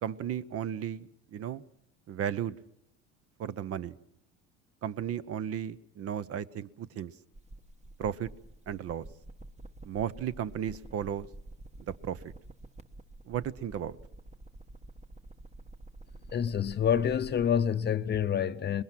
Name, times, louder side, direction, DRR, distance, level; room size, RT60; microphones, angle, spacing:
voice 1, 0.0-1.6 2.1-2.6 3.4-4.0 4.8-7.1 8.0-8.3 8.7-9.1 9.8-11.3 12.0-12.3 13.3-14.0, right 9 dB, 45° right, 0.8 m, -34 dB
sound 1, 7.3-17.7, right 2 dB, 20° right, 1.2 m, -49 dB
voice 2, 16.3-18.8, left 8 dB, 35° left, 0.7 m, -27 dB
22.0 x 20.5 x 6.1 m
supercardioid pair, 95°, 32 cm